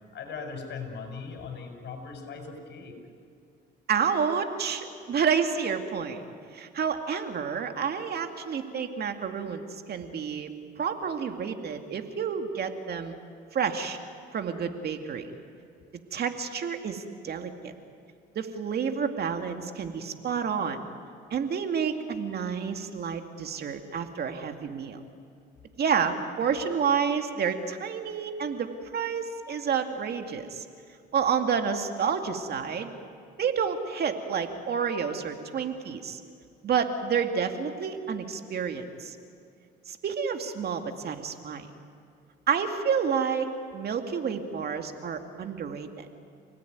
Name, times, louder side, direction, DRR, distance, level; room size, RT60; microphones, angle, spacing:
voice 1, 0.1-2.9, left 5 dB, 60° left, 4 dB, 6.8 m, -39 dB
voice 2, 3.9-6.2 6.5-10.5 10.8-13.2 13.5-14.0 14.3-15.3 16.1-17.7 18.4-20.9 21.3-25.0 25.8-30.6 31.1-32.9 33.4-36.2 36.6-39.2 39.9-41.7 42.5-46.1, right 6 dB, 55° right, 6 dB, 2.4 m, -29 dB
30.0 x 18.5 x 9.5 m, 2.5 s
cardioid pair, 85°, 20 cm